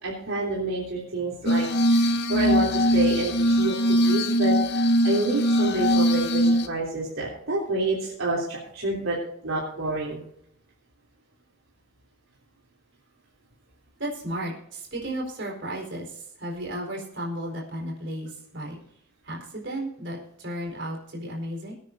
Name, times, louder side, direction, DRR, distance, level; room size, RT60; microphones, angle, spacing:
voice 1, 0.0-4.6 5.0-9.2 9.4-10.2, right 2 dB, 75° right, -5 dB, 3.3 m, -28 dB
Glass, 1.5-6.7, equal, 50° left, 0.9 m, -21 dB
voice 2, 14.0-18.8 19.2-21.7, right 1 dB, 55° right, -2 dB, 4.4 m, -34 dB
23.5 x 9.3 x 2.7 m, 0.70 s
head